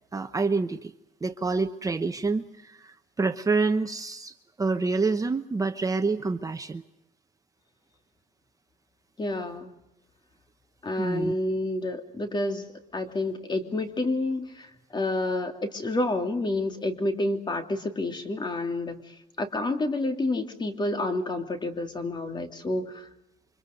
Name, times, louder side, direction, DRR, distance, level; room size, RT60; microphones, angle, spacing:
voice 1, 0.1-0.9 1.2-6.8 11.0-11.3, right 4 dB, 20° right, 7 dB, 1.0 m, -27 dB
voice 2, 9.2-9.7 10.8-12.7 12.9-23.1, left 2 dB, 25° left, 5 dB, 3.1 m, -29 dB
29.5 x 25.5 x 5.4 m, 0.88 s
cardioid pair, 110°, 17 cm